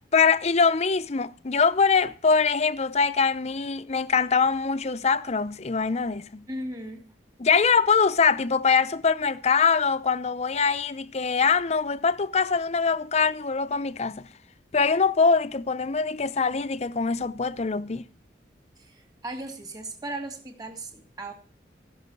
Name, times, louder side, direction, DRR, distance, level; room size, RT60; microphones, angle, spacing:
voice 1, 0.1-6.4 7.4-14.3 14.7-18.1, left 5 dB, 40° left, 0.6 m, -23 dB
voice 2, 6.5-7.0 18.8-21.3, right 1 dB, 20° right, 2.6 m, -37 dB
15.0 x 6.2 x 7.8 m
head